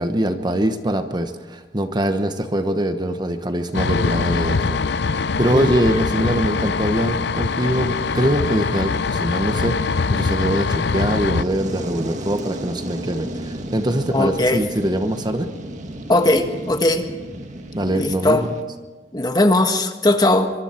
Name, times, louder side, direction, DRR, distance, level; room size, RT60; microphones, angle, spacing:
voice 1, 0.0-4.8 5.4-15.5 17.7-18.5, right 1 dB, 25° right, 8 dB, 1.1 m, -23 dB
sound 1, 3.7-11.4, left 4 dB, 70° left, 0.6 m, -22 dB
voice 2, 5.3-5.7 14.1-14.6 16.1-17.1 17.9-18.4 19.1-20.5, left 2 dB, 25° left, 6 dB, 1.6 m, -19 dB
Fire, 11.0-18.6, right 1 dB, 45° right, 1.9 m, -33 dB
24.5 x 23.5 x 4.5 m, 1.3 s
head